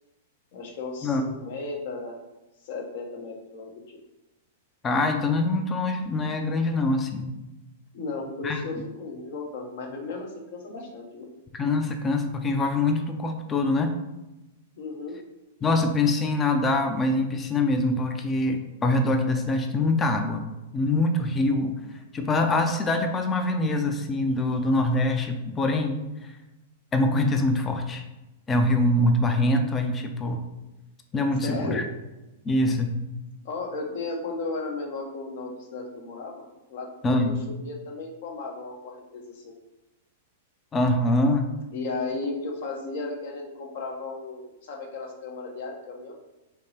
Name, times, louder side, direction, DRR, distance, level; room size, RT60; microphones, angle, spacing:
voice 1, 0.5-2.1 2.6-4.0 7.9-11.3 14.8-15.2 31.4-31.8 33.4-36.4 36.7-37.3 37.6-39.5 41.7-46.1, left 3 dB, 60° left, 1 dB, 1.0 m, -35 dB
voice 2, 4.8-7.3 8.4-8.6 11.5-13.9 15.6-20.4 20.7-21.8 22.1-26.0 26.9-28.0 28.5-30.4 31.1-31.9 32.5-33.0 37.0-37.4 40.7-41.5, left 2 dB, 20° left, 5 dB, 0.5 m, -24 dB
3.5 x 2.8 x 4.2 m, 1.0 s
hypercardioid pair, 140°, 0 cm